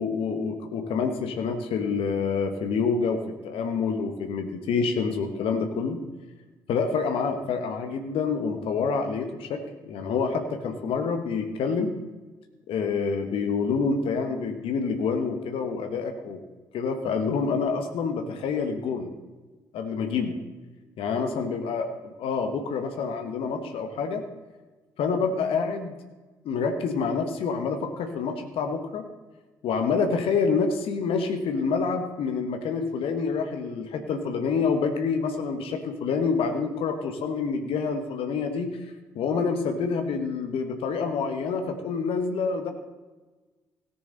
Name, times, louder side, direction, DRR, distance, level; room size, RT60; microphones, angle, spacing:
voice 1, 0.0-6.0 6.7-11.9 12.7-16.4 16.7-19.1 19.7-20.4 21.0-21.9 22.2-24.2 25.0-26.0 26.4-29.1 29.6-38.9 39.1-42.7, left 5 dB, 65° left, 6 dB, 1.2 m, -27 dB
17.5 x 7.0 x 3.9 m, 1.2 s
hypercardioid pair, 45°, 10 cm